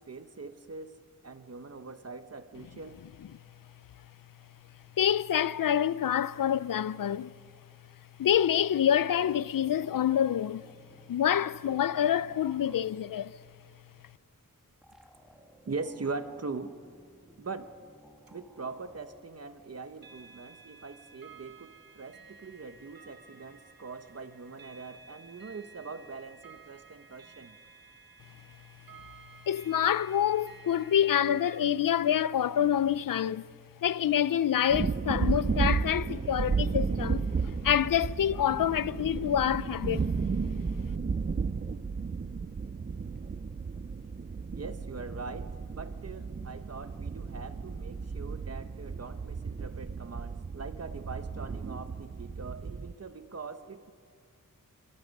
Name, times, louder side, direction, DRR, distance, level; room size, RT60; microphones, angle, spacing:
voice 1, 0.1-3.0 15.6-16.7 17.4-17.8 18.3-27.6 44.5-53.9, right 4 dB, 45° right, 1.1 m, -42 dB
voice 2, 5.0-7.3 8.2-10.7 11.1-13.3 29.5-33.5 33.8-40.1, left 10 dB, 70° left, 0.5 m, -27 dB
sound 1, 9.4-13.2 14.8-19.2, equal, ahead, 2.3 m, -58 dB
sound 2, 18.3-18.4 20.0-31.6, right 4 dB, 90° right, 1.5 m, -54 dB
sound 3, 34.7-52.9, right 5 dB, 30° right, 0.5 m, -33 dB
26.5 x 23.5 x 5.4 m
wide cardioid pair, 115°, 34 cm